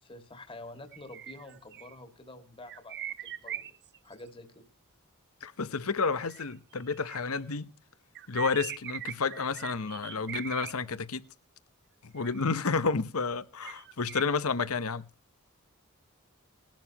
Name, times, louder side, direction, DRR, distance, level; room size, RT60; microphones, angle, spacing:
voice 1, 0.0-3.7 4.0-4.6, left 2 dB, 25° left, 2.0 m, -48 dB
sound 1, 0.9-2.0 2.7-4.1 6.0-7.4 8.2-10.7 12.2-12.7 13.6-14.2, right 10 dB, 55° right, 0.7 m, -41 dB
voice 2, 5.4-7.7 8.3-11.2 12.0-15.1, left 4 dB, 75° left, 0.9 m, -30 dB
20.0 x 12.0 x 2.9 m
head